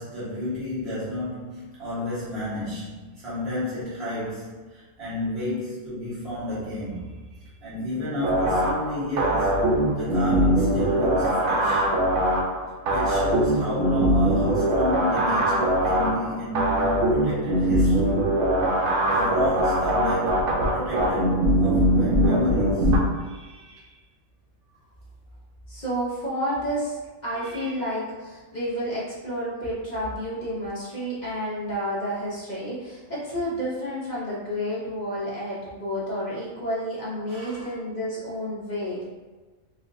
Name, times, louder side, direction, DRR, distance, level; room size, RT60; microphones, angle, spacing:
voice 1, 0.0-9.7 10.0-11.9 12.8-18.2 19.1-23.9 27.4-27.8 37.3-37.7, left 1 dB, 50° right, -10 dB, 1.6 m, -31 dB
sound 1, 8.2-23.0, right 1 dB, 80° right, 1.2 m, -22 dB
voice 2, 25.7-39.0, equal, 35° left, -8 dB, 0.9 m, -30 dB
4.2 x 2.4 x 2.6 m, 1.3 s
omnidirectional pair, 1.4 m